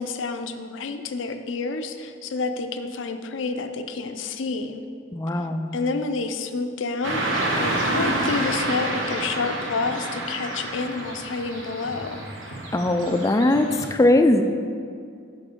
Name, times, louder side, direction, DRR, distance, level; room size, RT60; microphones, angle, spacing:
voice 1, 0.0-4.9 5.7-12.3, left 4 dB, 75° left, 8 dB, 0.5 m, -29 dB
voice 2, 5.1-5.7 12.7-13.7 14.0-14.4, left 1 dB, 15° left, 7 dB, 0.3 m, -19 dB
Car passing by / Traffic noise roadway noise, 7.0-13.9, right 1 dB, 85° right, 1.1 m, -28 dB
6.0 x 5.4 x 5.1 m, 2.3 s
head